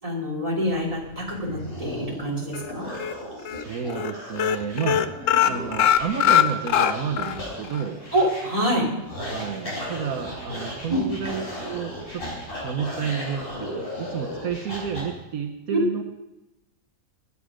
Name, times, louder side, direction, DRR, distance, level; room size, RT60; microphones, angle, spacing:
voice 1, 0.0-2.9 8.1-8.9 10.9-11.0 15.7-15.8, equal, 25° right, -3 dB, 3.4 m, -25 dB
sound 1, 0.7-15.0, equal, 40° left, 4.9 m, -36 dB
sound 2, 2.5-3.1 3.4-3.6 3.9-4.1 4.4-7.4 7.7-7.8 8.2-8.3, left 10 dB, 65° left, 1.0 m, -21 dB
voice 2, 3.3-5.0 5.4-8.0 9.2-12.2 12.6-16.0, right 7 dB, 80° right, 3 dB, 1.4 m, -31 dB
21.0 x 8.4 x 5.0 m, 0.97 s
omnidirectional pair, 1.5 m